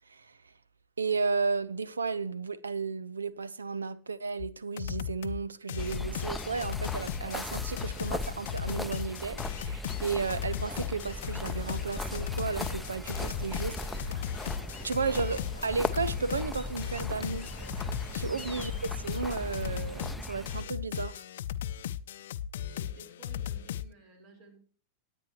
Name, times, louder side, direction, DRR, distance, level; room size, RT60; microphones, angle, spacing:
voice 1, 0.1-0.5 1.0-14.3 14.8-17.5 18.1-21.2, right 4 dB, 75° right, 0.8 m, -33 dB
sound 1, 4.4-4.5 4.8-5.4 5.7-23.9, left 11 dB, 60° left, 0.6 m, -37 dB
sound 2, 5.8-20.6, left 1 dB, 5° left, 0.8 m, -38 dB
sound 3, 11.2-19.7, left 2 dB, 85° left, 1.0 m, -49 dB
voice 2, 22.5-24.6, right 3 dB, 50° right, 4.6 m, -55 dB
19.5 x 8.9 x 3.1 m
figure-of-eight pair, 90°, 0 cm